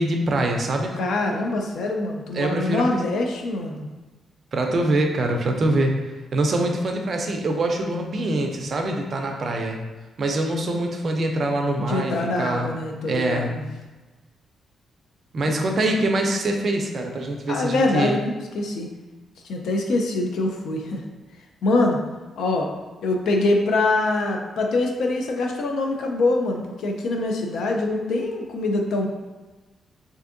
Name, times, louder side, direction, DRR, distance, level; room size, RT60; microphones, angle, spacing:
voice 1, 0.0-1.0 2.3-3.0 4.5-5.9 6.3-9.8 10.2-12.7 13.0-13.6 15.3-18.2, right 1 dB, 45° right, 3 dB, 0.4 m, -24 dB
voice 2, 1.0-3.9 11.8-13.6 15.5-15.6 17.5-18.9 19.4-21.0 21.6-22.0 22.4-22.7 23.0-29.1, left 2 dB, 75° left, 2 dB, 0.4 m, -24 dB
3.4 x 2.5 x 2.5 m, 1.2 s
cardioid pair, 140°, 0 cm